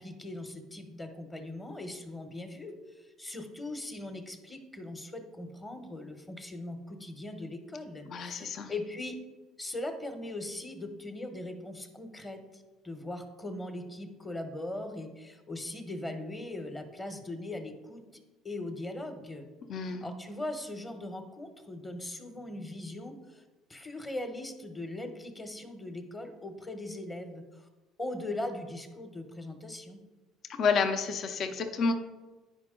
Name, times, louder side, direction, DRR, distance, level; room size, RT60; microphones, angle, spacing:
voice 1, 0.0-9.2 9.6-18.0 18.4-19.5 20.0-23.4 23.7-27.7 28.0-30.0, left 1 dB, 15° left, 7 dB, 0.9 m, -40 dB
voice 2, 8.1-8.7 19.7-20.1 30.5-31.9, left 5 dB, 45° left, 7 dB, 0.6 m, -29 dB
10.0 x 4.9 x 3.7 m, 1.2 s
cardioid pair, 130°, 0 cm